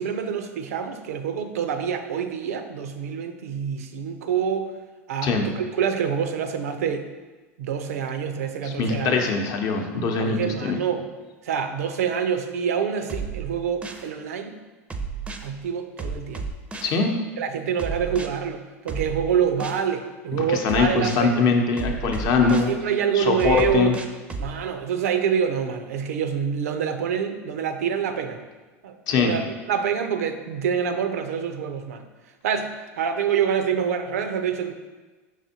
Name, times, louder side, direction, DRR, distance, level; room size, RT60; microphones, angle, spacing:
voice 1, 0.0-4.7 5.1-7.1 7.6-9.2 10.2-11.1 11.4-14.5 15.4-16.5 17.4-21.5 22.4-24.0 24.4-28.4 28.8-32.0 32.4-34.7, right 7 dB, 80° right, 8 dB, 0.4 m, -26 dB
voice 2, 8.6-10.8 16.8-17.1 20.6-22.7 23.1-23.9 29.1-29.3, left 4 dB, 50° left, 3 dB, 0.7 m, -22 dB
sound 1, 13.1-14.1 14.9-15.5 16.0-17.0 17.8-18.3 18.9-19.8 20.7-21.2 21.8-22.7 23.4-24.5, right 4 dB, 15° right, 0.4 m, -32 dB
4.8 x 3.5 x 2.7 m, 1.2 s
hypercardioid pair, 90°, 8 cm